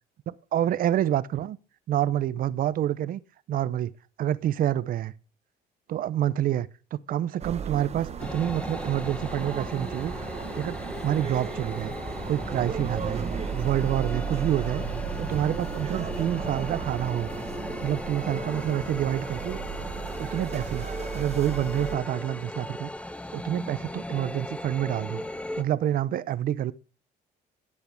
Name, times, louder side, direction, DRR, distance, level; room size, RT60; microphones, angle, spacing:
voice 1, 0.3-1.6 1.9-3.2 3.5-3.9 4.2-5.1 5.9-10.1 10.5-11.9 12.3-13.2 13.5-14.8 15.2-17.3 17.8-19.6 20.2-20.9 21.1-22.9 23.3-25.2 25.6-26.7, right 11 dB, 60° right, 0.7 m, -27 dB
sound 1, 7.4-22.0, right 7 dB, 40° right, 1.1 m, -35 dB
sound 2, 8.2-25.6, left 1 dB, 5° left, 0.9 m, -37 dB
13.0 x 8.6 x 3.4 m
cardioid pair, 110°, 17 cm